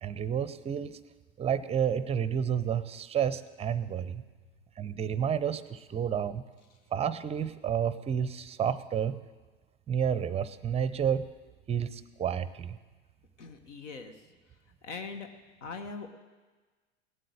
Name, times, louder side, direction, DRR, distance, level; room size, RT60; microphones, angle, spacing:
voice 1, 0.0-1.0 1.4-4.2 4.8-6.4 6.9-9.2 9.9-11.3 11.7-12.8, right 8 dB, 15° right, 15 dB, 0.6 m, -30 dB
voice 2, 13.4-14.2 14.8-15.3 15.6-16.1, left 4 dB, 80° left, 7 dB, 1.2 m, -41 dB
18.0 x 7.8 x 6.5 m, 1.3 s
hypercardioid pair, 90°, 36 cm